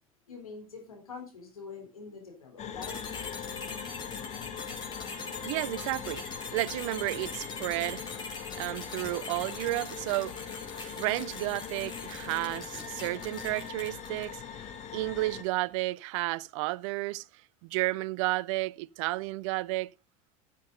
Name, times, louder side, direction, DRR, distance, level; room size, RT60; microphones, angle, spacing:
voice 1, 0.3-3.0, left 5 dB, 90° left, 3.8 m, -45 dB
sound 1, 2.6-15.4, left 8 dB, 40° left, 1.7 m, -41 dB
sound 2, 2.8-14.4, left 3 dB, 25° left, 4.5 m, -43 dB
voice 2, 5.2-6.3 6.5-8.1 8.5-17.2 17.6-19.9, right 20 dB, 65° right, 0.5 m, -32 dB
12.5 x 7.7 x 3.8 m
hypercardioid pair, 80°, 18 cm